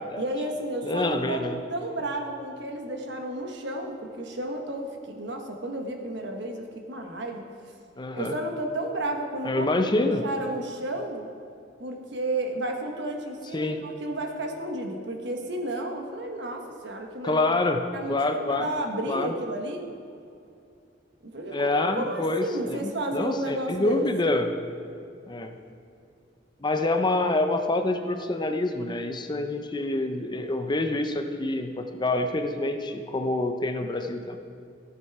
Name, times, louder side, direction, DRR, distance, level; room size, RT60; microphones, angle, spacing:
voice 1, 0.2-1.4 1.7-7.4 8.1-11.3 11.8-17.5 17.9-18.1 18.5-19.8 21.2-24.3, right 1 dB, 65° right, 3 dB, 1.4 m, -32 dB
voice 2, 0.8-1.6 8.0-8.3 9.5-10.2 13.5-13.8 17.2-18.7 19.1-19.3 21.5-24.5 25.3-25.5 26.6-34.4, left 2 dB, 25° left, 6 dB, 0.6 m, -26 dB
14.0 x 8.3 x 4.8 m, 2.5 s
head